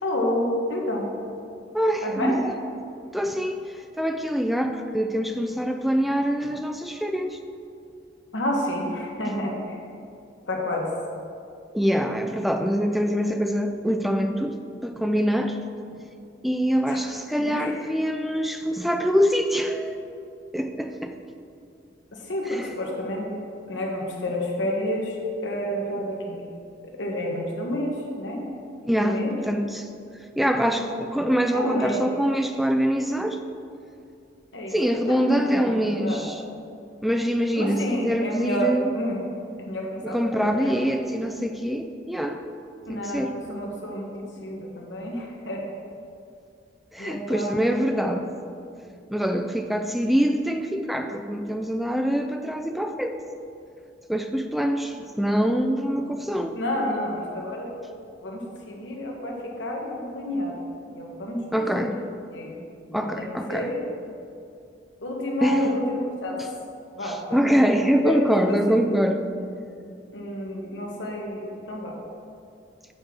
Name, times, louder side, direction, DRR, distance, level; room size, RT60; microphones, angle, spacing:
voice 1, 0.0-1.1 2.0-2.4 8.3-9.8 10.5-10.9 16.9-17.0 17.4-17.8 22.1-23.3 23.7-25.2 25.4-26.4 26.8-28.4 29.0-29.3 31.5-32.0 34.5-36.2 37.5-39.2 39.6-40.7 42.9-45.6 47.0-48.1 56.5-57.7 58.2-60.5 60.9-61.9 62.3-62.6 62.9-63.8 65.0-66.5 66.9-68.8 70.1-71.9, left 1 dB, 90° left, -1 dB, 1.2 m, -30 dB
voice 2, 1.7-2.4 3.1-7.4 11.7-15.6 16.4-20.0 20.5-21.2 22.5-22.7 28.9-29.9 30.4-33.4 34.7-36.4 37.0-38.9 40.0-42.4 42.9-43.4 46.9-48.2 49.1-53.2 54.1-56.6 61.5-62.0 62.9-63.7 65.4-65.8 67.0-69.2, equal, ahead, 6 dB, 0.3 m, -24 dB
7.8 x 3.7 x 6.0 m, 2.5 s
head